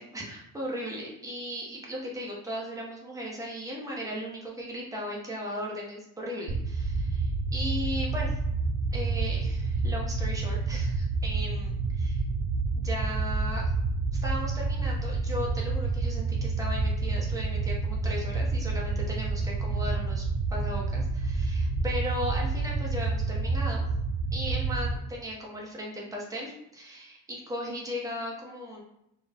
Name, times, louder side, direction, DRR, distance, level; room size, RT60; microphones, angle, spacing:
voice 1, 0.0-8.4 8.9-12.2 12.8-13.7 14.2-23.9 24.3-28.8, equal, 10° right, -3 dB, 0.9 m, -37 dB
sound 1, 6.5-25.0, right 3 dB, 75° right, 0.6 m, -29 dB
4.3 x 2.3 x 3.6 m, 0.81 s
cardioid pair, 165°, 33 cm